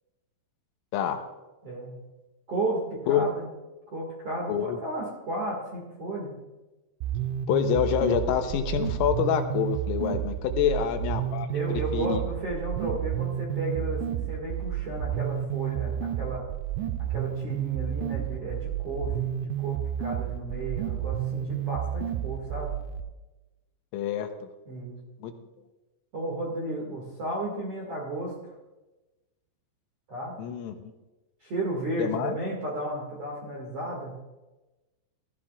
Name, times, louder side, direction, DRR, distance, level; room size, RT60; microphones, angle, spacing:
voice 1, 1.6-1.9 2.5-3.5 3.9-6.3 10.6-10.9 11.5-16.4 17.1-22.7 24.6-25.0 26.1-28.3 30.1-30.3 31.4-34.1, right 2 dB, 55° right, -3 dB, 1.6 m, -33 dB
voice 2, 4.5-4.8 7.5-11.5 11.9-12.2 23.9-24.5 25.2-25.3 30.4-30.9 32.0-32.4, left 9 dB, 85° left, 6 dB, 3.4 m, -27 dB
sound 1, 7.0-23.0, right 10 dB, 85° right, 2.7 m, -31 dB
16.0 x 13.5 x 2.4 m, 1.1 s
omnidirectional pair, 5.9 m